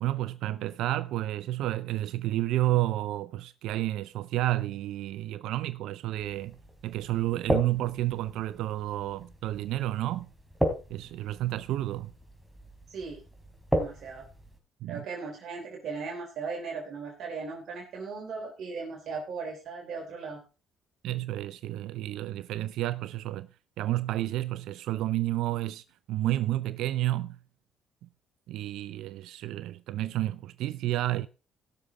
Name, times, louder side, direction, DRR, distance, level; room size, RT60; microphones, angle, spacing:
voice 1, 0.0-6.6 6.8-10.3 10.9-12.1 14.8-15.0 21.0-23.5 23.8-27.4 28.0-28.1 28.5-31.3, right 15 dB, 80° right, 0.5 m, -30 dB
sound 1, 6.2-14.6, equal, ahead, 3.2 m, -35 dB
voice 2, 12.9-13.2 13.7-14.3 14.9-20.4, right 4 dB, 60° right, 3.3 m, -37 dB
17.5 x 6.6 x 3.6 m
supercardioid pair, 75°, 0 cm